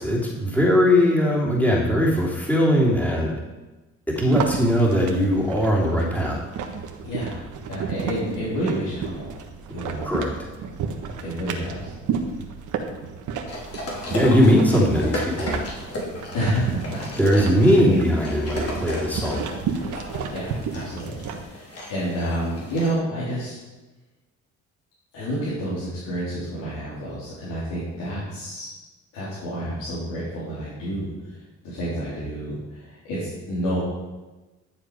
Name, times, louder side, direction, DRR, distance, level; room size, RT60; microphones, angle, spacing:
voice 1, 0.0-3.3 4.1-6.4 10.0-10.3 14.1-15.7 17.2-19.4, equal, 5° left, -4 dB, 3.1 m, -20 dB
sound 1, 4.1-21.4, right 6 dB, 80° right, 1.3 m, -33 dB
voice 2, 7.0-7.4 7.7-9.3 9.7-10.1 11.2-11.9 16.3-17.0 20.3-23.6 25.1-28.7 29.1-31.1 31.6-33.8, equal, 90° left, -9 dB, 3.7 m, -29 dB
sound 2, 13.5-22.9, left 1 dB, 50° left, 3.5 m, -35 dB
12.0 x 7.4 x 4.9 m, 1.1 s
cardioid pair, 90°, 30 cm